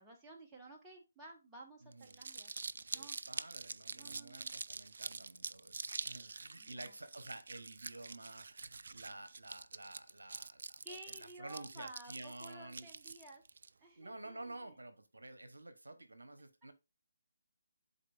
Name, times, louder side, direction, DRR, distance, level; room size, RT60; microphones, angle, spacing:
voice 1, 0.0-2.5 2.9-3.2 3.9-4.6 6.6-6.9 10.8-13.4 13.8-14.7, right 2 dB, 10° right, 1.3 m, -54 dB
voice 2, 1.8-2.2 2.9-12.9 13.9-16.7, right 2 dB, 70° right, 0.9 m, -51 dB
Crumpling crinkling, 1.9-13.7, right 4 dB, 55° right, 0.3 m, -46 dB
10.5 x 4.2 x 2.5 m
figure-of-eight pair, 145°, 0 cm